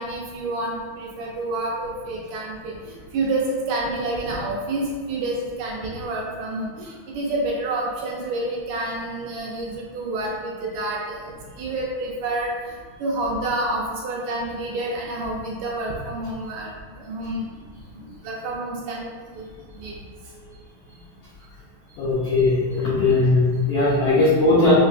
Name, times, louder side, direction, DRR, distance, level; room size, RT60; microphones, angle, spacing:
voice 1, 0.0-11.2 11.6-12.5 13.0-16.7 17.0-17.4 18.2-19.1 19.4-19.5 19.8-19.9, right 2 dB, 80° right, -2 dB, 1.7 m, -28 dB
voice 2, 22.0-24.7, left 2 dB, 85° left, -9 dB, 1.4 m, -19 dB
5.1 x 2.2 x 2.4 m, 1.5 s
omnidirectional pair, 3.4 m